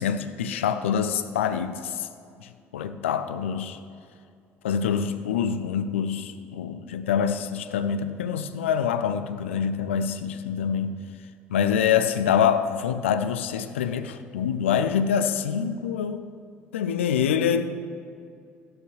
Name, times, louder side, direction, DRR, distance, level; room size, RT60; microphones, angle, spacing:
voice 1, 0.0-2.1 2.4-3.8 4.6-11.0 11.5-16.2 16.7-17.7, left 7 dB, 75° left, 11 dB, 0.5 m, -25 dB
13.5 x 10.5 x 3.1 m, 2.4 s
figure-of-eight pair, 55°, 7 cm